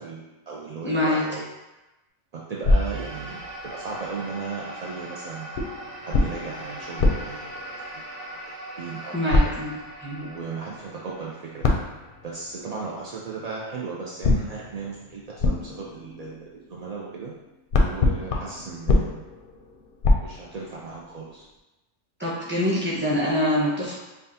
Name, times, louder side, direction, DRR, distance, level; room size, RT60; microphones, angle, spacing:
voice 1, 0.0-1.4 2.3-5.6 6.1-8.3 8.8-9.5 10.2-11.7 12.2-17.3 17.8-19.2 20.2-21.5, right 4 dB, 60° right, -5 dB, 0.4 m, -36 dB
voice 2, 0.8-1.2 9.1-9.7 10.0-10.2 22.2-24.0, left 1 dB, 10° right, -7 dB, 1.0 m, -24 dB
sound 1, 2.6-3.9 5.6-8.5 9.3-10.1 11.6-12.8 14.2-17.1 17.4-21.1, left 2 dB, 60° left, 0.6 m, -25 dB
sound 2, 2.6-13.1, right 1 dB, 85° right, 1.6 m, -40 dB
5.5 x 2.3 x 2.7 m, 1.1 s
omnidirectional pair, 1.2 m